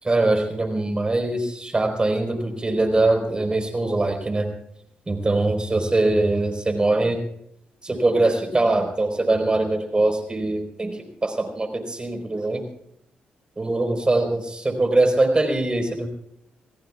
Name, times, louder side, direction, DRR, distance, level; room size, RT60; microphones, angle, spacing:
voice 1, 0.0-4.5 5.1-7.2 7.8-12.7 13.6-16.1, right 2 dB, 25° right, 5 dB, 4.2 m, -22 dB
28.0 x 17.0 x 2.4 m, 0.72 s
supercardioid pair, 55°, 3 cm